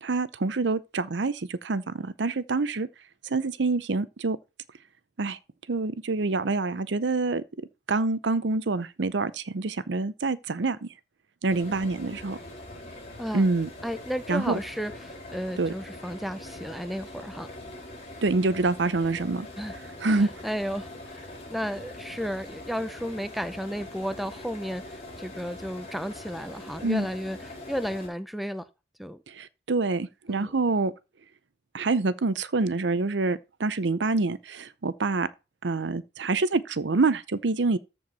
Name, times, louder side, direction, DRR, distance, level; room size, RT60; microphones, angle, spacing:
voice 1, 0.0-2.9 3.2-4.4 5.2-5.4 5.7-7.4 7.9-10.9 11.4-12.4 13.3-13.7 14.3-14.6 15.6-15.7 18.2-19.5 20.0-20.3 26.8-27.1 29.3-30.9 31.7-35.3 35.6-37.8, right 3 dB, 75° right, 0.7 m, -26 dB
sound 1, 11.5-28.1, left 1 dB, 35° left, 4.5 m, -43 dB
voice 2, 13.2-13.5 13.8-17.5 19.6-19.7 20.0-28.7 29.0-29.2 30.3-30.5, equal, ahead, 0.5 m, -33 dB
13.5 x 4.7 x 4.2 m
head